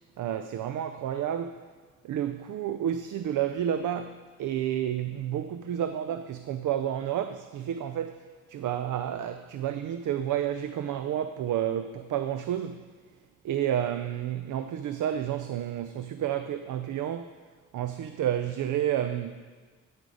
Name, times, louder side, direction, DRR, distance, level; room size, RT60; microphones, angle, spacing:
voice 1, 0.2-1.6 2.0-12.9 13.4-17.3 17.7-19.4, right 10 dB, 85° right, 10 dB, 0.5 m, -30 dB
9.1 x 8.2 x 4.9 m, 1.5 s
cardioid pair, 90°, 30 cm